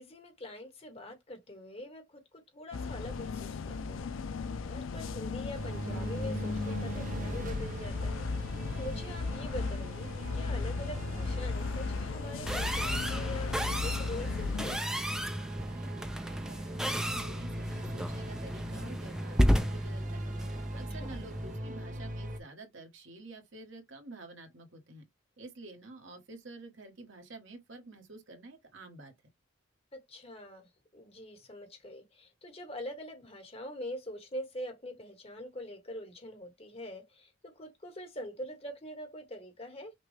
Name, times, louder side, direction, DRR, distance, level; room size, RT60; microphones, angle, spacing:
voice 1, 0.0-4.1 4.6-14.8 20.9-21.2 29.9-39.9, left 1 dB, 30° left, 1.3 m, -44 dB
sound 1, 2.7-14.8, left 4 dB, 80° left, 0.5 m, -36 dB
sound 2, 5.5-22.4, right 1 dB, 40° right, 0.7 m, -40 dB
sound 3, 12.5-21.6, equal, 5° right, 0.3 m, -33 dB
voice 2, 15.6-20.3 20.7-25.0 25.4-29.1, right 2 dB, 70° right, 1.4 m, -49 dB
5.9 x 2.3 x 3.3 m
head